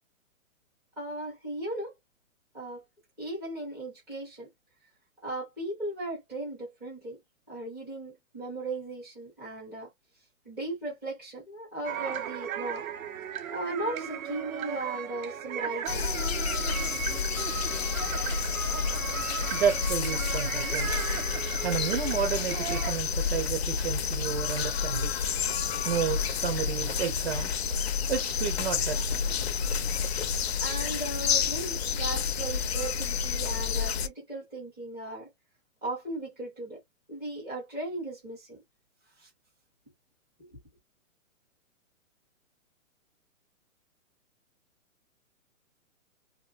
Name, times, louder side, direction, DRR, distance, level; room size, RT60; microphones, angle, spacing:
voice 1, 1.0-1.9 2.5-2.8 3.2-4.5 5.2-7.2 7.5-9.9 10.4-12.9 13.5-16.1 19.1-19.2 30.6-35.3 35.8-36.8 37.1-38.6 39.2-39.3 40.4-40.5, right 2 dB, 5° right, 0.5 m, -37 dB
sound 1, 11.8-22.9, right 9 dB, 80° right, 0.7 m, -36 dB
sound 2, 15.9-34.1, left 6 dB, 50° left, 0.5 m, -30 dB
voice 2, 19.1-29.5, right 7 dB, 50° right, 0.8 m, -32 dB
2.5 x 2.1 x 3.1 m
hypercardioid pair, 160°, 41 cm